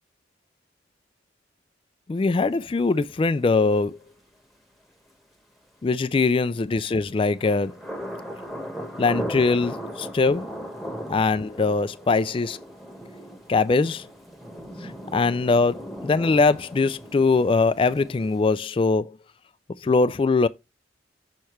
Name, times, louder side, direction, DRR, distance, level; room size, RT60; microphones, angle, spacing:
voice 1, 2.1-4.0 5.8-7.8 9.0-10.5 11.1-12.6 13.5-14.1 14.8-19.1 19.8-20.5, left 3 dB, 25° left, 0.3 m, -22 dB
sound 1, 7.3-18.4, equal, ahead, 1.1 m, -37 dB
6.5 x 5.6 x 3.0 m
head